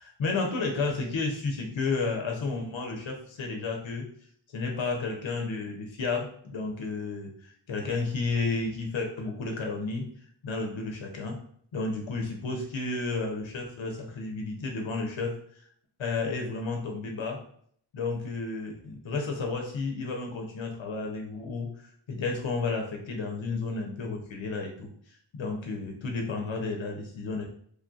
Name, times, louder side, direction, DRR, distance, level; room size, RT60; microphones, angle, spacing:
voice 1, 0.2-4.0 4.5-10.1 10.4-11.4 11.7-15.7 16.0-17.4 17.9-27.5, left 3 dB, 80° left, 1 dB, 0.6 m, -32 dB
3.3 x 2.5 x 2.3 m, 0.62 s
wide cardioid pair, 50°, 46 cm